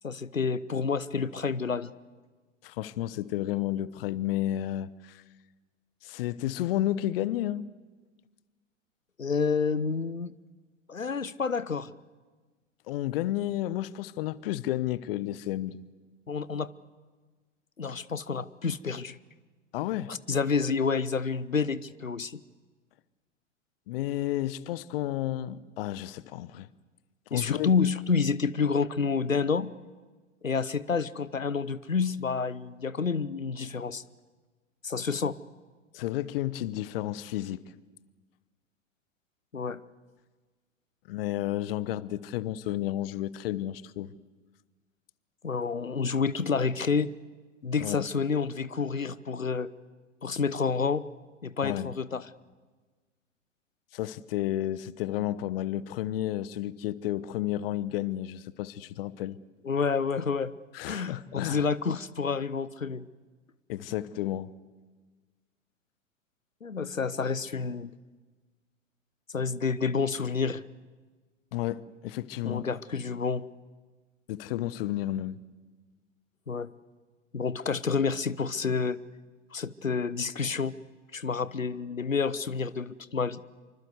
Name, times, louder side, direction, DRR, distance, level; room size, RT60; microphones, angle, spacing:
voice 1, 0.0-1.9 9.2-10.3 10.9-11.9 16.3-16.7 17.8-19.2 20.1-22.4 27.3-29.7 30.4-34.0 34.8-35.4 39.5-39.8 45.4-47.1 47.6-49.7 50.2-51.0 51.4-52.3 59.6-60.5 60.9-63.1 66.6-67.9 69.3-70.6 72.4-73.5 76.5-76.7 77.3-79.0 79.5-80.7 81.1-83.4, left 5 dB, 90° left, 0.9 m, -29 dB
voice 2, 2.6-5.2 6.0-7.7 12.9-15.8 19.7-20.1 23.9-26.7 27.3-27.7 35.9-37.6 41.1-44.1 47.8-48.0 51.6-51.9 53.9-59.4 60.7-61.7 63.7-64.5 71.5-72.7 74.3-75.4, left 13 dB, 45° left, 1.1 m, -31 dB
25.5 x 24.5 x 8.1 m
figure-of-eight pair, 100°, 38 cm